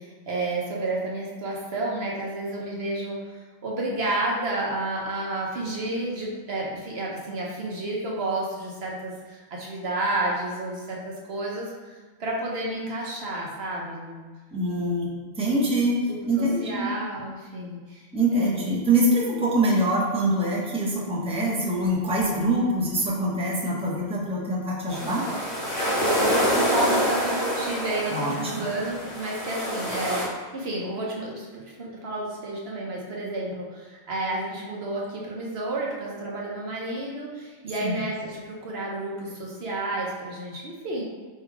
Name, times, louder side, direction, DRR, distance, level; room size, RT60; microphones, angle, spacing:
voice 1, 0.0-3.2 3.6-11.9 12.2-14.3 14.8-14.9 15.4-15.7 16.4-18.1 18.3-18.7 26.0-41.0, right 2 dB, 55° right, -3 dB, 0.9 m, -31 dB
voice 2, 14.5-15.1 15.4-16.0 16.3-16.9 18.1-25.2 28.1-28.6 37.8-38.0, right 1 dB, 5° right, -5 dB, 0.6 m, -24 dB
sound 1, 24.9-30.3, equal, 35° left, 0.9 m, -26 dB
3.5 x 2.7 x 4.7 m, 1.4 s
omnidirectional pair, 1.4 m